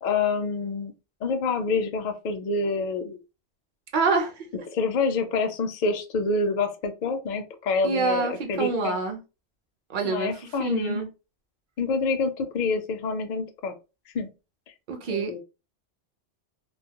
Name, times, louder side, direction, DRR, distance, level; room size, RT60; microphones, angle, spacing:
voice 1, 0.0-0.9 1.2-3.2 4.7-9.0 10.0-11.0 11.8-13.7 14.1-14.3 15.1-15.4, left 4 dB, 60° left, 0.5 m, -27 dB
voice 2, 3.9-4.5 7.8-9.2 9.9-11.1 14.9-15.3, right 4 dB, 55° right, 0.7 m, -27 dB
2.2 x 2.0 x 2.8 m
omnidirectional pair, 1.2 m